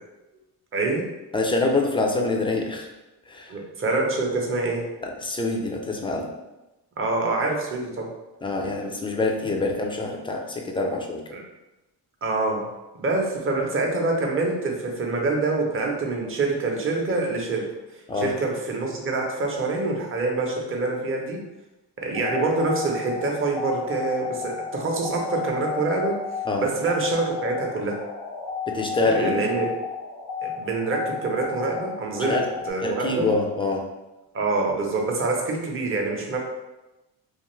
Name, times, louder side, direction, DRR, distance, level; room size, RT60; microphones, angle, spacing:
voice 1, 0.7-1.0 3.5-4.8 7.0-8.1 11.3-11.4 12.2-12.7 13.0-17.6 18.2-21.4 22.0-26.2 26.6-28.0 29.0-29.7 30.4-33.3 34.3-36.4, right 3 dB, 30° right, 0 dB, 0.6 m, -26 dB
voice 2, 1.3-2.9 3.3-3.5 5.0-6.3 8.4-11.2 18.1-18.3 26.5-26.7 28.7-29.4 32.2-32.4 32.8-33.9, left 3 dB, 15° left, 1 dB, 0.3 m, -25 dB
sound 1, 22.1-32.7, left 6 dB, 80° left, 0.7 m, -33 dB
2.5 x 2.5 x 3.0 m, 1.0 s
cardioid pair, 95°, 41 cm